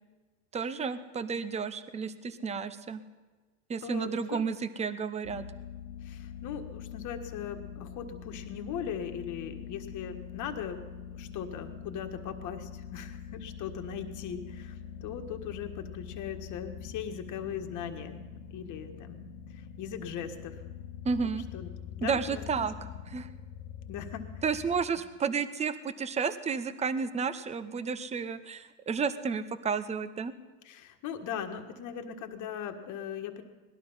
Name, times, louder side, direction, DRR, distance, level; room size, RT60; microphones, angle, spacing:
voice 1, 0.5-3.0 3.7-5.4 21.0-21.4 22.0-22.7 23.1-23.3 24.4-30.3, right 5 dB, 15° right, 12 dB, 0.7 m, -32 dB
voice 2, 3.8-4.4 6.0-10.8 11.1-18.2 18.5-20.6 21.5-22.7 23.9-24.4 30.6-33.4, left 8 dB, 45° left, 5 dB, 1.6 m, -39 dB
sound 1, 5.2-24.9, left 8 dB, 70° left, 1.2 m, -44 dB
18.5 x 12.0 x 5.6 m, 1.3 s
supercardioid pair, 115°, 43 cm